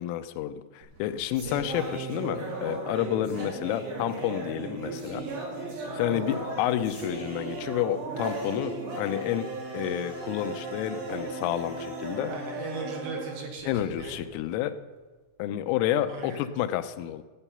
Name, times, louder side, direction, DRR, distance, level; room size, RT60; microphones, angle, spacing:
voice 1, 0.0-5.2 5.9-9.5 9.7-12.3 13.7-14.7 15.4-17.2, left 12 dB, 90° left, 10 dB, 3.2 m, -30 dB
sound 1, 0.8-14.3, right 2 dB, 50° right, 3.9 m, -36 dB
voice 2, 6.1-6.4 12.2-13.7 14.0-14.1 16.1-16.4, right 3 dB, 70° right, 2 dB, 2.5 m, -38 dB
14.0 x 9.0 x 5.6 m, 1.3 s
omnidirectional pair, 5.6 m